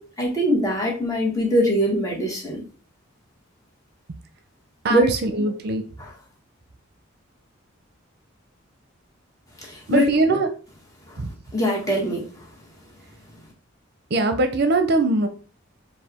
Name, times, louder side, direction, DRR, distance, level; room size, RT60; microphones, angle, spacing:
voice 1, 0.0-2.6 4.9-5.1 6.0-6.1 9.6-10.1 11.1-11.2 11.5-12.5, equal, 15° left, -2 dB, 1.6 m, -22 dB
voice 2, 4.8-5.8 9.9-10.5 11.2-11.3 14.1-15.3, right 2 dB, 55° right, 7 dB, 0.6 m, -21 dB
4.7 x 2.6 x 4.3 m, 0.38 s
head